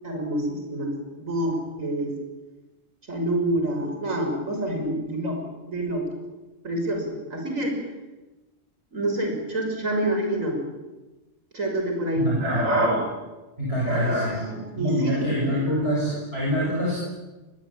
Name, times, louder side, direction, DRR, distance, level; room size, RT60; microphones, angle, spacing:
voice 1, 0.0-2.1 3.1-5.4 5.7-6.0 6.6-7.8 8.9-10.6 11.5-13.1 13.8-15.6, right 1 dB, 90° right, 2 dB, 6.7 m, -27 dB
voice 2, 12.1-12.8 13.6-14.4 14.8-17.0, equal, 50° right, -4 dB, 7.8 m, -25 dB
24.5 x 21.5 x 8.9 m, 1.1 s
omnidirectional pair, 1.3 m